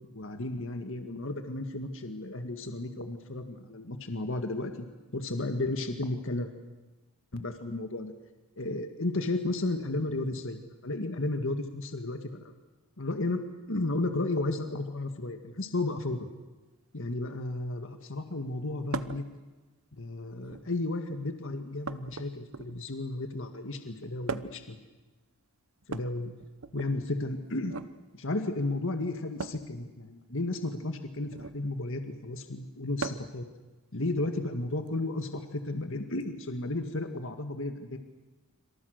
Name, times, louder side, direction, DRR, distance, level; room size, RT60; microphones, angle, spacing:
voice 1, 0.1-4.9 5.1-6.5 7.3-8.1 8.6-12.5 13.0-16.3 16.9-19.2 20.0-24.8 25.9-26.3 26.7-27.8 28.1-33.4 33.9-38.0, left 2 dB, 60° left, 6 dB, 1.9 m, -33 dB
sound 1, 18.9-19.3 20.3-20.8 21.8-22.9 24.3-24.7 25.8-26.9 27.6-27.9 29.4-29.7 31.3-31.6 33.0-33.4 34.9-35.0 36.2-36.3, right 4 dB, 65° right, 1.0 m, -38 dB
27.0 x 26.0 x 6.6 m, 1.2 s
head